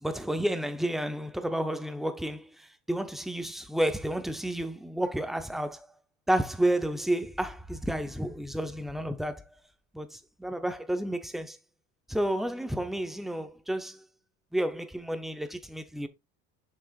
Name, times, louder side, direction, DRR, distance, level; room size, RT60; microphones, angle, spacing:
voice 1, 0.0-5.9 6.3-9.4 9.9-11.6 12.1-14.1 14.5-16.1, right 1 dB, ahead, 0.6 m, -31 dB
6.9 x 6.0 x 2.4 m
cardioid pair, 135°, 33 cm